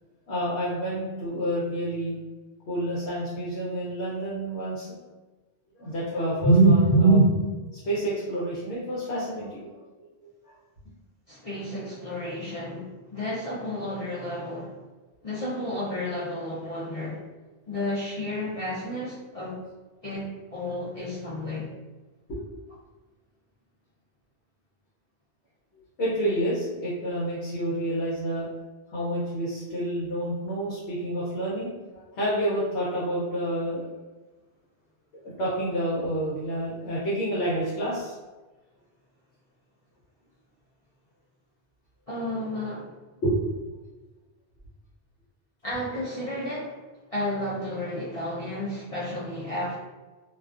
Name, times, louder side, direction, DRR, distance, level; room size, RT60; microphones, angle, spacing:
voice 1, 0.3-2.2 2.7-4.9 5.8-7.3 7.7-9.7 10.2-10.3 22.3-22.4 26.0-28.5 28.9-33.9 35.4-38.2 43.2-43.4, right 1 dB, 75° left, -7 dB, 1.0 m, -26 dB
voice 2, 11.3-14.8 15.2-17.2 17.7-19.6 20.0-21.7 42.1-42.9 45.6-46.8 47.1-49.7, left 1 dB, 40° left, -10 dB, 0.5 m, -32 dB
2.3 x 2.3 x 2.4 m, 1.2 s
omnidirectional pair, 1.1 m